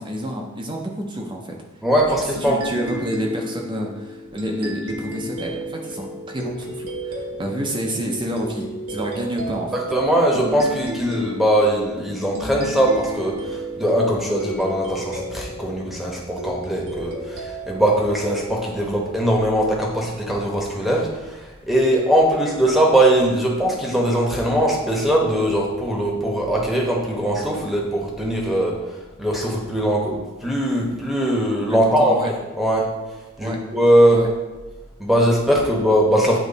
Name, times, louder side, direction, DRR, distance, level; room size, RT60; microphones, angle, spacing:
voice 1, 0.0-1.5 2.4-9.8 31.7-32.3 33.4-33.6 34.1-34.3, equal, 20° right, 1 dB, 0.5 m, -29 dB
voice 2, 1.8-2.6 9.9-28.7 29.2-30.2 30.4-32.9 33.4-34.2 35.0-36.4, right 1 dB, ahead, -2 dB, 0.9 m, -20 dB
sound 1, 2.4-19.5, equal, 90° right, 1.1 m, -33 dB
8.2 x 3.0 x 4.0 m, 1.2 s
head